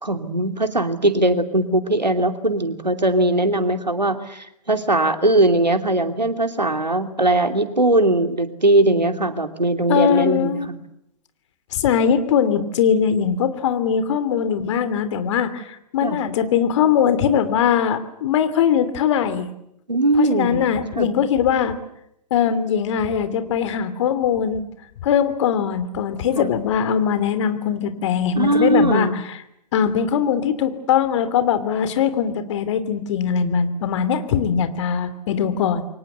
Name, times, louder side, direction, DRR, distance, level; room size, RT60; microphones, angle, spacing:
voice 1, 0.0-10.8 16.0-16.2 19.9-20.7 20.9-21.1 26.3-26.5 28.3-29.1, right 1 dB, 85° right, 8 dB, 2.8 m, -20 dB
voice 2, 9.9-10.7 11.7-19.5 20.2-21.7 22.3-24.6 25.0-29.4 29.7-35.9, left 8 dB, 45° left, 11 dB, 2.9 m, -21 dB
28.5 x 24.0 x 8.2 m, 0.79 s
figure-of-eight pair, 115°, 21 cm